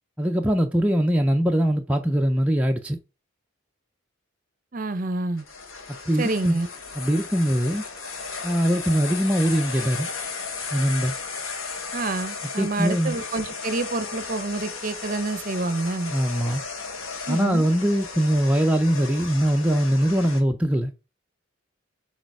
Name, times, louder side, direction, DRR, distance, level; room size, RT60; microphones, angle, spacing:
voice 1, 0.2-3.0 6.1-6.6 7.0-7.8 8.4-10.1 10.7-11.1 12.6-13.2 16.1-16.6 17.3-20.9, equal, 5° right, 0.4 m, -22 dB
voice 2, 4.7-5.4 6.2-6.7 11.9-16.1 17.3-17.7, right 2 dB, 40° right, 0.7 m, -28 dB
sound 1, 5.4-20.4, left 4 dB, 90° left, 1.1 m, -35 dB
6.5 x 4.0 x 4.6 m
head